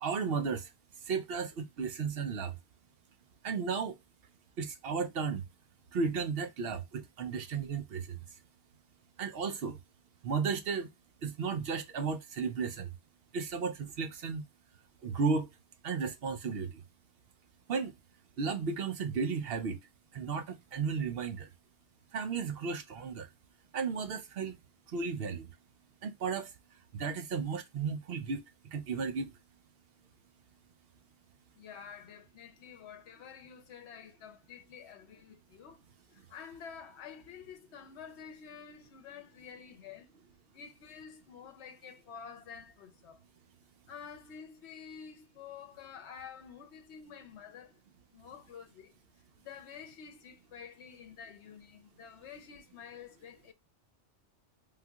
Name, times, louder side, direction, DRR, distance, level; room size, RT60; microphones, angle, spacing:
voice 1, 0.0-0.7 1.0-2.6 3.4-4.0 4.6-5.4 5.9-8.2 9.2-9.8 10.2-10.9 11.2-12.9 13.3-14.4 15.0-15.5 15.8-16.8 17.7-17.9 18.4-19.8 20.1-21.5 22.1-23.3 23.7-24.6 24.9-25.5 26.0-26.5 26.9-29.4, right 5 dB, 60° right, 0.8 m, -34 dB
voice 2, 31.5-35.8 36.1-40.1 40.5-43.2 43.9-47.8 48.1-49.0 49.4-53.5, left 7 dB, 70° left, 1.0 m, -49 dB
3.6 x 2.8 x 2.3 m
omnidirectional pair, 1.2 m